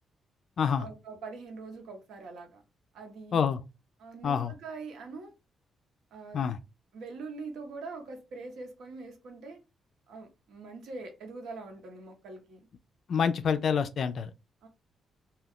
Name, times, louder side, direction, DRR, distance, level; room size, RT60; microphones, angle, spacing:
voice 1, 0.8-2.6 2.9-3.4 4.0-5.3 6.1-6.5 6.9-9.6 10.1-12.7 14.6-14.7, right 3 dB, 75° right, 0.8 m, -43 dB
voice 2, 13.1-14.3, left 7 dB, 50° left, 0.3 m, -27 dB
2.3 x 2.2 x 3.5 m
cardioid pair, 150°, 0 cm